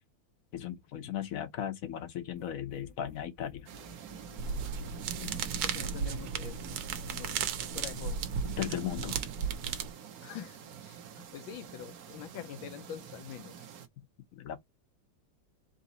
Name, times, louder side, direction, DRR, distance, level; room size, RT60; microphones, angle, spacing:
voice 1, 0.5-3.7 8.4-9.2 14.3-14.6, left 10 dB, 60° left, 1.0 m, -37 dB
sound 1, 2.3-7.8, left 2 dB, 40° left, 0.4 m, -54 dB
sound 2, 3.7-13.9, right 8 dB, 60° right, 1.0 m, -47 dB
sound 3, 4.4-9.9, right 7 dB, 80° right, 1.5 m, -35 dB
voice 2, 5.1-6.8 7.1-7.5 7.7-8.2 10.2-13.7, left 10 dB, 80° left, 1.4 m, -45 dB
3.9 x 2.8 x 4.0 m
omnidirectional pair, 2.2 m